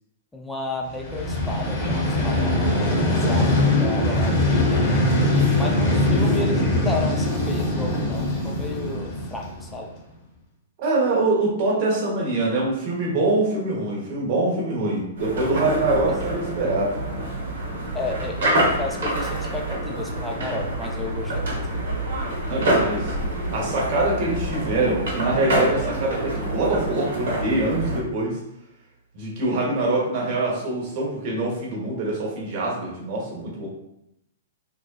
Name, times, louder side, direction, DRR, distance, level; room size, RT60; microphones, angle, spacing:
voice 1, 0.3-2.5 3.1-5.1 5.5-9.9 16.1-16.2 17.9-21.6, left 2 dB, 10° left, 0 dB, 0.5 m, -32 dB
Vehicle, 0.9-9.9, left 1 dB, 35° left, 0.9 m, -22 dB
voice 2, 10.8-16.9 22.5-23.1 23.5-28.4 29.1-33.7, right 2 dB, 50° right, -3 dB, 1.0 m, -24 dB
sound 1, 15.2-28.0, right 1 dB, 70° right, 0.9 m, -26 dB
2.7 x 2.2 x 2.3 m, 0.82 s
hypercardioid pair, 115°, 0 cm